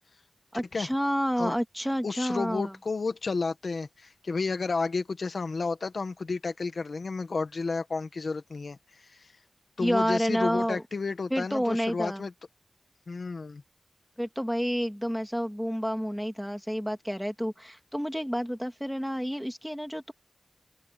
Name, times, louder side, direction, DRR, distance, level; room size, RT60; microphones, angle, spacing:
voice 1, 0.5-2.7 9.8-10.8 11.3-12.3 14.2-20.1, equal, ahead, 2.3 m, -29 dB
voice 2, 2.0-9.3 9.8-12.3 13.1-13.6, left 4 dB, 70° left, 1.4 m, -32 dB
open air
wide cardioid pair, 95°, 0 cm